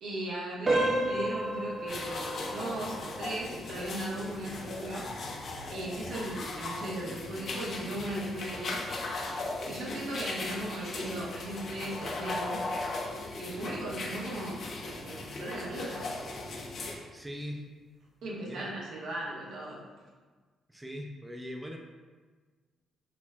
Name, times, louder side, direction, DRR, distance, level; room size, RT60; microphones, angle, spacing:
voice 1, 0.0-5.1 5.7-8.9 9.7-12.6 13.4-14.6 14.9-16.1 18.2-19.8, right 1 dB, 80° right, -4 dB, 0.9 m, -37 dB
sound 1, 0.6-11.3 11.7-11.9 12.5-12.6 13.1-13.2, right 1 dB, 35° right, 0.8 m, -36 dB
sound 2, 1.9-17.0, left 2 dB, 60° left, 0.6 m, -38 dB
voice 2, 17.1-17.6 18.5-18.7 20.7-21.8, equal, 10° right, 1 dB, 0.4 m, -40 dB
5.8 x 2.4 x 2.2 m, 1.4 s
cardioid pair, 90°, 0 cm